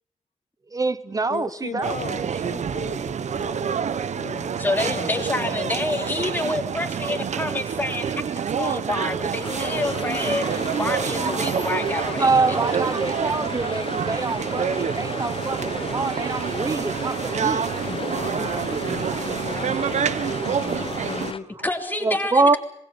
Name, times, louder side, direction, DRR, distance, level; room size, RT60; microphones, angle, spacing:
voice 1, 0.7-2.0 9.4-9.5 10.4-10.9 11.2-11.4 12.2-17.7 22.0-22.6, right 3 dB, 30° right, 0.9 m, -25 dB
voice 2, 1.3-6.2 17.8-21.5, left 6 dB, 90° left, 2.5 m, -37 dB
sound 1, 1.8-21.3, right 7 dB, 85° right, 1.2 m, -27 dB
voice 3, 4.6-8.1 8.6-12.6 21.6-22.6, left 2 dB, 15° left, 3.3 m, -28 dB
sound 2, 9.4-21.4, left 5 dB, 50° left, 1.2 m, -35 dB
26.5 x 21.0 x 7.1 m
wide cardioid pair, 160°, 12 cm